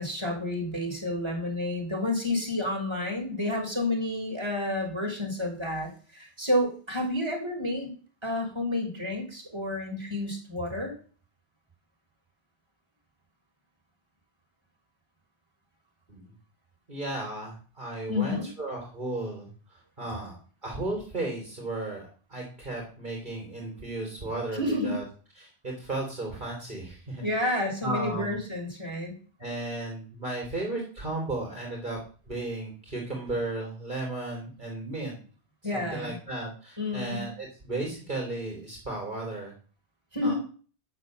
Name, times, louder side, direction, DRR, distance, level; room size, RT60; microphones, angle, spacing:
voice 1, 0.0-7.9 8.2-10.9 18.1-18.5 24.5-25.0 27.2-29.2 35.6-36.2 36.8-37.3 40.1-40.4, left 1 dB, 25° right, -1 dB, 4.4 m, -30 dB
voice 2, 16.9-20.4 20.6-25.0 25.4-27.5 27.8-28.4 29.4-32.0 32.3-35.2 35.7-39.5 40.2-40.3, right 2 dB, 45° right, -1 dB, 3.5 m, -35 dB
10.5 x 6.6 x 7.8 m, 0.40 s
omnidirectional pair, 1.1 m